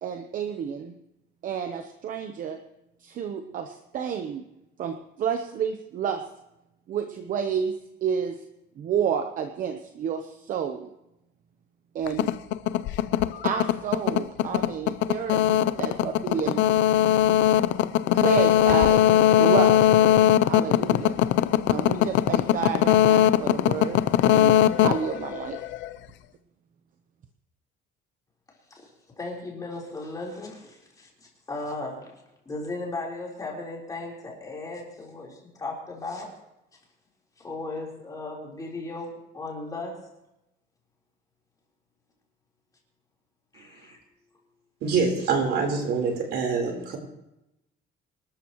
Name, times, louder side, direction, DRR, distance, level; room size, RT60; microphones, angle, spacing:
voice 1, 0.0-0.9 1.4-2.6 3.0-4.4 4.8-6.2 6.9-7.7 8.0-8.4 8.8-10.9 11.9-12.3 13.4-16.6 18.1-19.0 19.3-19.7 20.4-21.2 21.7-25.6, right 7 dB, 45° right, 6 dB, 0.9 m, -30 dB
sound 1, 12.1-25.9, left 12 dB, 70° left, 0.6 m, -20 dB
voice 2, 28.7-32.1 32.5-36.4 37.4-40.1 43.5-44.0, left 2 dB, 20° left, -2 dB, 4.0 m, -36 dB
voice 3, 44.8-47.0, right 5 dB, 60° right, 2 dB, 4.0 m, -25 dB
25.5 x 13.0 x 3.1 m, 0.90 s
cardioid pair, 165°, 20 cm